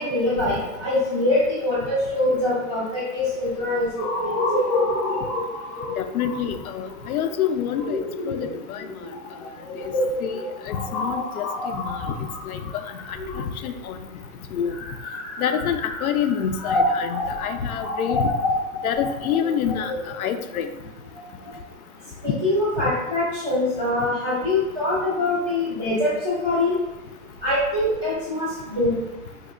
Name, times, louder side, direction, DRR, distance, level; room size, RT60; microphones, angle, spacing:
voice 1, 0.0-4.6 22.2-26.7 27.4-29.0, left 1 dB, 10° right, -10 dB, 0.5 m, -24 dB
sound 1, 4.0-13.8 14.6-21.5, left 1 dB, 25° left, 0.7 m, -28 dB
voice 2, 6.0-8.8 9.8-9.9 10.2-12.1 12.5-12.6 13.1-13.9 14.5-14.7 15.4-18.3 18.8-20.7, left 8 dB, 75° left, 8 dB, 0.5 m, -27 dB
3.9 x 2.9 x 2.4 m, 0.97 s
hypercardioid pair, 165°, 43 cm